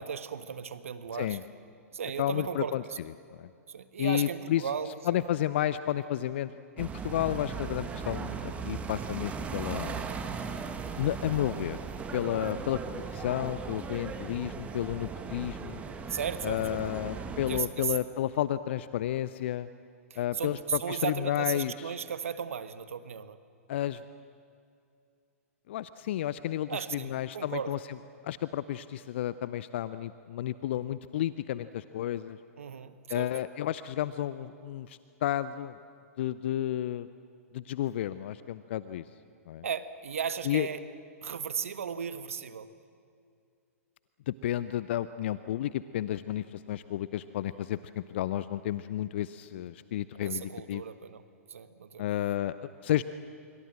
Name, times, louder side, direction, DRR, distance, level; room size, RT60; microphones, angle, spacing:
voice 1, 0.0-1.4 1.9-3.0 3.7-5.2 12.4-12.7 16.1-16.8 17.5-18.0 20.1-23.4 26.7-27.7 32.6-33.3 39.6-40.8 41.2-42.7 50.1-51.2 51.5-52.1, right 7 dB, 65° right, 13 dB, 1.4 m, -36 dB
voice 2, 2.2-2.8 3.4-3.5 4.0-4.6 5.1-10.1 11.0-11.8 12.1-15.8 16.4-19.7 20.2-22.0 23.7-24.0 25.7-27.8 28.2-32.4 33.1-35.8 36.2-37.1 37.5-39.0 39.5-39.7 40.4-40.7 44.3-50.8 52.0-53.0, left 12 dB, 50° left, 15 dB, 0.7 m, -32 dB
sound 1, 6.8-17.6, right 5 dB, 15° right, 1.7 m, -38 dB
26.5 x 23.5 x 7.7 m, 2.4 s
figure-of-eight pair, 105°, 8 cm